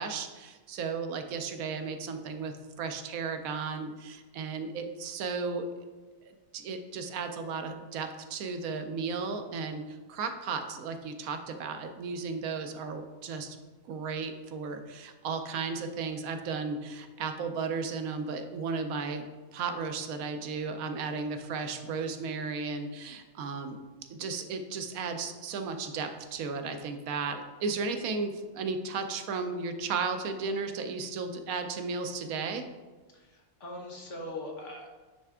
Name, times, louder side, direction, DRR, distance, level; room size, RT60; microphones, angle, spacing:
voice 1, 0.0-5.7 6.3-13.6 13.9-19.2 19.5-23.8 24.1-32.7, right 4 dB, 85° right, 7 dB, 1.1 m, -34 dB
voice 2, 33.1-34.9, left 1 dB, 60° left, 0 dB, 1.5 m, -41 dB
9.1 x 3.3 x 3.6 m, 1.3 s
omnidirectional pair, 1.4 m